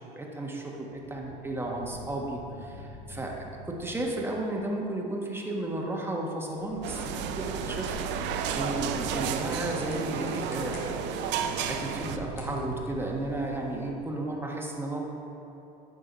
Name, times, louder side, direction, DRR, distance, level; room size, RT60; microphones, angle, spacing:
voice 1, 0.1-7.9 8.5-11.4 11.7-15.0, right 1 dB, 10° right, -1 dB, 1.5 m, -33 dB
sound 1, 0.9-4.5 5.6-5.8 7.1-9.7 11.1-12.9, equal, 90° left, 2.1 m, -46 dB
sound 2, 6.6-13.9, right 1 dB, 70° left, 2.1 m, -43 dB
sound 3, 6.8-12.2, right 8 dB, 60° right, 0.6 m, -32 dB
10.5 x 6.3 x 4.2 m, 2.9 s
hypercardioid pair, 80°, 21 cm